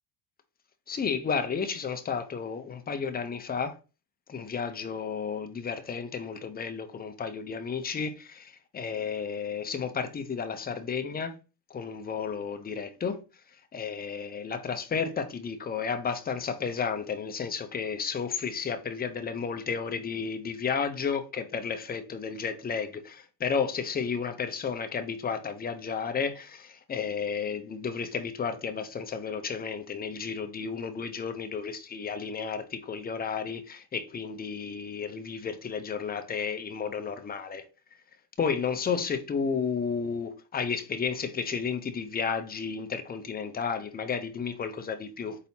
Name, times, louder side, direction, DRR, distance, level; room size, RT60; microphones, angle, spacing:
voice 1, 0.9-3.8 4.3-11.3 11.7-13.2 13.7-37.6 38.4-45.4, left 6 dB, 20° left, 0.6 m, -32 dB
4.1 x 4.0 x 2.7 m
supercardioid pair, 100°, 48 cm